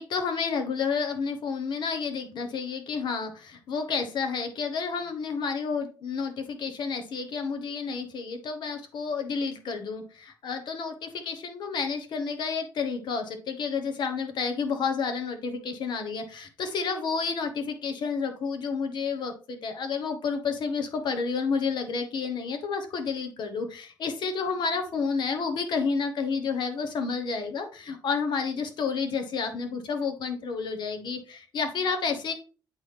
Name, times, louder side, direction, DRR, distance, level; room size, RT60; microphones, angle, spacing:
voice 1, 0.0-32.3, left 5 dB, 65° left, 6 dB, 1.1 m, -30 dB
8.1 x 3.8 x 3.3 m, 0.36 s
cardioid pair, 145°, 8 cm